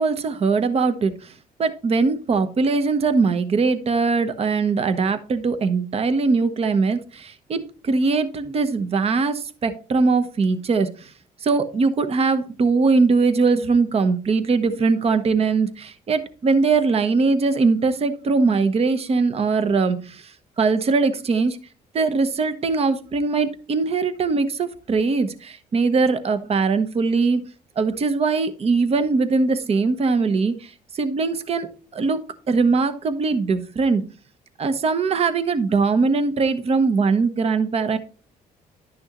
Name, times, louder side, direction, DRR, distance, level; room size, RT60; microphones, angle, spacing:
voice 1, 0.0-1.3 1.6-11.1 11.4-21.6 21.9-27.4 27.8-31.7 31.9-34.1 34.6-38.0, right 4 dB, 40° right, 11 dB, 1.0 m, -21 dB
11.0 x 6.2 x 3.0 m, 0.37 s
cardioid pair, 105°, 16 cm